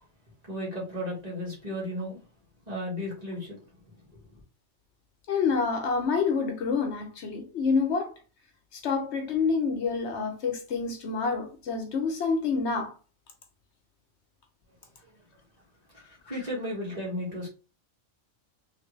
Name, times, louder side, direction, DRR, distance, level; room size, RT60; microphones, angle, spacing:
voice 1, 0.5-2.2 2.7-3.6 4.1-4.2 16.3-17.5, equal, 35° right, 1.6 m, -34 dB
voice 2, 5.3-8.1 8.7-12.9, left 5 dB, 70° left, 1.0 m, -27 dB
3.3 x 2.6 x 3.0 m
omnidirectional pair, 1.2 m